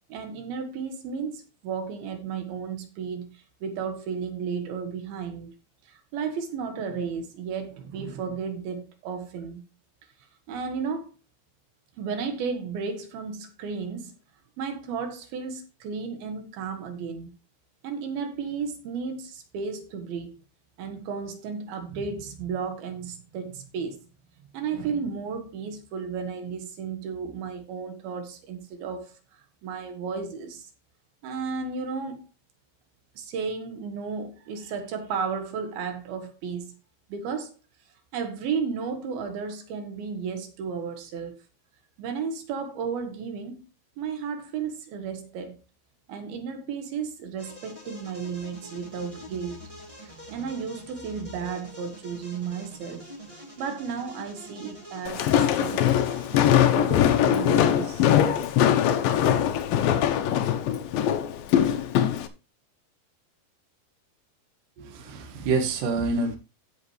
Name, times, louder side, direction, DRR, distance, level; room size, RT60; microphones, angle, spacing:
voice 1, 0.1-5.5 5.9-9.6 10.5-11.1 12.0-14.1 14.6-17.3 17.8-20.3 20.8-24.0 24.5-29.1 29.6-30.7 31.2-32.2 33.2-36.7 37.1-37.5 38.1-41.4 42.0-43.6 44.0-45.6 46.1-49.6 50.0-53.1 53.3-55.3 55.6-56.2 56.7-58.1, right 6 dB, 90° right, 3.2 m, -33 dB
sound 1, 47.4-56.6, equal, 10° right, 2.7 m, -45 dB
Walk footsteps, 55.1-62.3, left 10 dB, 80° left, 2.5 m, -22 dB
voice 2, 64.8-66.4, right 3 dB, 70° right, 2.9 m, -27 dB
15.5 x 6.1 x 3.1 m
omnidirectional pair, 4.2 m